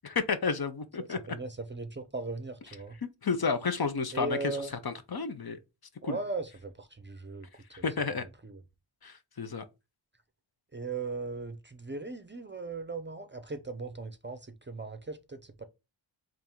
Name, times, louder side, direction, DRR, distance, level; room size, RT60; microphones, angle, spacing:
voice 1, 0.0-1.2 3.2-4.6 4.8-5.6 6.0-6.2 7.7-8.2 9.0-9.6, left 5 dB, 50° left, 0.7 m, -31 dB
voice 2, 1.0-3.0 4.1-4.7 6.0-7.5 7.8-7.9 8.4-8.6 10.7-15.6, right 3 dB, 25° right, 0.5 m, -38 dB
3.5 x 2.6 x 4.3 m
wide cardioid pair, 45°, 47 cm